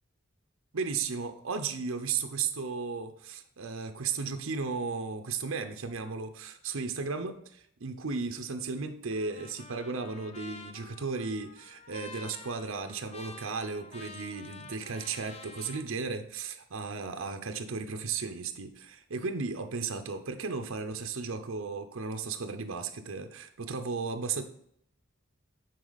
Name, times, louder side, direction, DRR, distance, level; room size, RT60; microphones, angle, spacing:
voice 1, 0.7-24.4, right 4 dB, 80° right, 7 dB, 0.7 m, -35 dB
Trumpet, 9.1-15.9, left 3 dB, 30° left, 0.5 m, -49 dB
9.3 x 4.3 x 4.0 m, 0.68 s
head